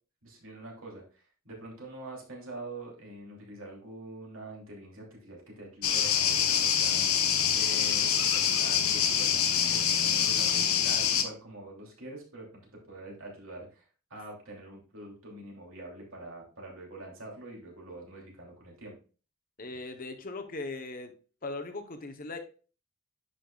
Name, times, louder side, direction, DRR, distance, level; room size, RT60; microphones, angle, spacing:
voice 1, 0.2-18.9, right 2 dB, 70° right, -2 dB, 2.9 m, -45 dB
sound 1, 5.8-11.2, left 8 dB, 85° left, 0.9 m, -25 dB
voice 2, 19.6-21.1 21.4-22.4, left 2 dB, 40° left, 6 dB, 0.9 m, -39 dB
10.5 x 5.5 x 2.3 m, 0.36 s
head